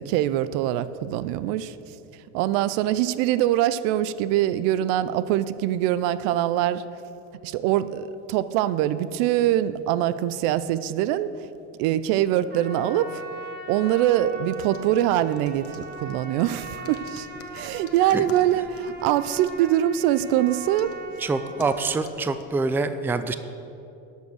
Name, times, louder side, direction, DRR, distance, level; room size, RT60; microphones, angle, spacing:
voice 1, 0.0-1.7 2.3-6.8 7.4-11.3 11.8-13.2 13.7-17.3 17.5-21.0, right 12 dB, 70° right, 15 dB, 0.6 m, -23 dB
Trumpet, 12.5-22.0, right 2 dB, 25° right, 1.4 m, -40 dB
sound 1, 14.4-22.5, left 5 dB, 35° left, 1.1 m, -48 dB
voice 2, 21.2-23.3, right 3 dB, 5° right, 11 dB, 0.4 m, -25 dB
12.5 x 5.5 x 6.4 m, 2.8 s
supercardioid pair, 90°, 38 cm